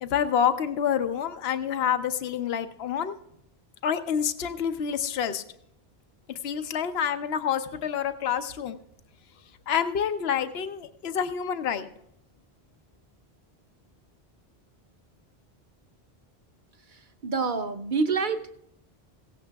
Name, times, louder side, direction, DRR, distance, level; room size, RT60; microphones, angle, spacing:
voice 1, 0.0-3.2 3.8-5.4 6.4-8.8 9.7-11.9, left 8 dB, 75° left, 10 dB, 1.0 m, -27 dB
voice 2, 16.9-18.6, right 4 dB, 50° right, 7 dB, 1.0 m, -28 dB
16.5 x 15.5 x 2.3 m, 0.77 s
omnidirectional pair, 1.0 m